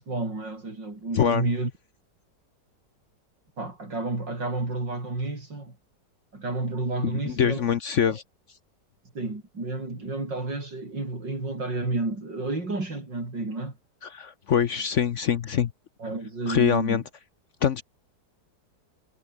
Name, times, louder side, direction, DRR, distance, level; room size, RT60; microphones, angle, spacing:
voice 1, 0.0-1.7 3.6-5.7 6.3-7.6 8.1-8.2 9.1-13.7 16.0-17.0, right 2 dB, 80° right, 6.9 m, -30 dB
voice 2, 7.0-8.2 14.0-15.7 16.5-17.0 17.6-17.8, left 8 dB, 55° left, 0.9 m, -24 dB
omnidirectional pair, 1.9 m